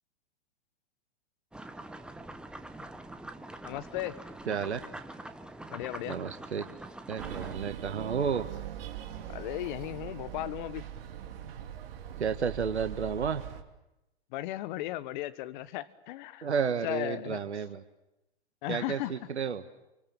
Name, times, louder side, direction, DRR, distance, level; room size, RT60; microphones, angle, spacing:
sound 1, 1.5-7.6, right 2 dB, 5° right, 1.2 m, -44 dB
voice 1, 3.6-4.2 5.7-6.2 9.3-10.8 14.3-16.5 16.8-17.4 18.6-19.1, left 15 dB, 45° left, 15 dB, 1.3 m, -36 dB
voice 2, 4.5-4.8 6.0-6.6 7.1-8.5 12.2-13.4 16.4-17.8 18.7-19.6, right 6 dB, 85° right, 8 dB, 1.5 m, -31 dB
sound 2, 7.2-13.6, right 9 dB, 60° right, 2.9 m, -41 dB
28.5 x 25.5 x 7.4 m, 0.93 s
hypercardioid pair, 120°, 33 cm